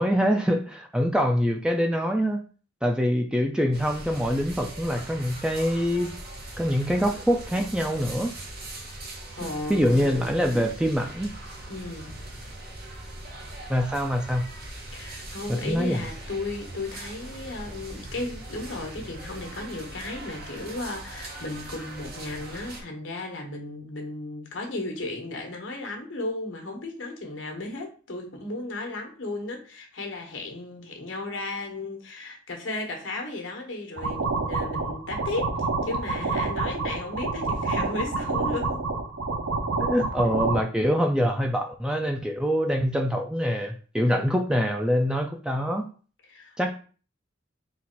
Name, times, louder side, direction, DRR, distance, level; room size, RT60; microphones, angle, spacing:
voice 1, 0.0-2.4 2.8-6.1 6.6-8.3 9.7-11.3 13.7-14.4 15.5-16.0 39.8-45.9 46.6-46.7, equal, 5° right, 4 dB, 0.3 m, -24 dB
sound 1, 3.7-22.8, right 1 dB, 50° right, 1.0 m, -40 dB
voice 2, 9.4-10.4 11.7-12.1 14.9-38.9 46.3-46.7, left 2 dB, 70° left, 3 dB, 1.2 m, -35 dB
sound 2, 34.0-40.6, right 3 dB, 75° right, 0.6 m, -28 dB
4.0 x 2.5 x 4.4 m, 0.39 s
head